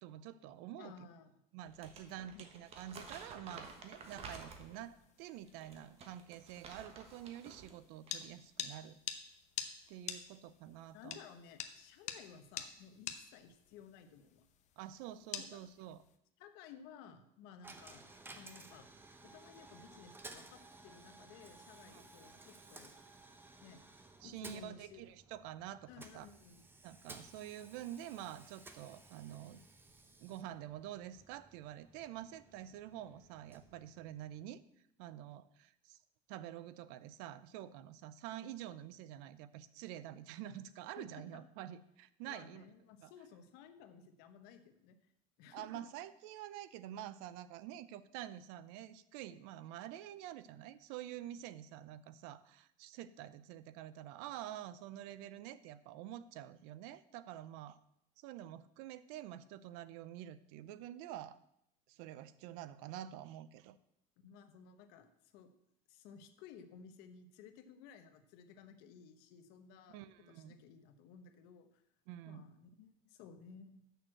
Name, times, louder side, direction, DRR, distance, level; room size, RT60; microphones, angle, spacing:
voice 1, 0.0-0.9 1.5-9.0 9.9-11.2 14.8-16.0 21.9-22.0 24.2-26.3 26.8-29.6 30.2-34.6 35.0-36.0 36.3-42.7 43.0-43.1 45.5-57.8 58.2-61.4 61.9-63.8 69.9-70.6 72.1-72.5, right 12 dB, 85° right, 15 dB, 0.6 m, -48 dB
voice 2, 0.8-1.3 2.3-2.4 10.9-14.5 15.4-15.6 16.4-18.1 18.3-18.9 19.2-22.9 23.6-23.8 24.2-25.0 25.9-26.6 41.0-41.4 42.2-45.0 45.4-45.8 64.2-65.5 65.9-70.0 70.3-71.8 72.2-73.8, left 7 dB, 80° left, 8 dB, 1.0 m, -56 dB
Crumpling crinkling, 1.6-4.9 5.5-7.7 8.0-8.3, right 4 dB, 40° right, 1.3 m, -52 dB
sound 1, 3.5-16.2, left 9 dB, 45° left, 0.8 m, -49 dB
Coin (dropping), 17.6-34.6, right 3 dB, 15° right, 0.8 m, -57 dB
6.5 x 6.3 x 7.6 m, 0.77 s
cardioid pair, 150°, 17 cm